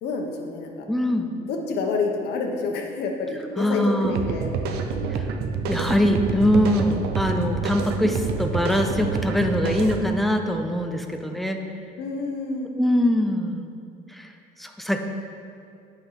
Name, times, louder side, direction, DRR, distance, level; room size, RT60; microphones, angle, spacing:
voice 1, 0.0-0.8 1.4-4.5 12.0-12.7, left 4 dB, 75° left, 2 dB, 1.2 m, -28 dB
voice 2, 0.9-1.3 3.6-4.2 5.1-5.2 5.7-11.6 12.8-13.7 14.1-14.3 14.6-15.0, left 1 dB, ahead, 4 dB, 0.7 m, -23 dB
sound 1, 4.0-10.0, right 5 dB, 75° right, 0.8 m, -27 dB
8.4 x 5.6 x 6.0 m, 2.5 s
cardioid pair, 110°, 17 cm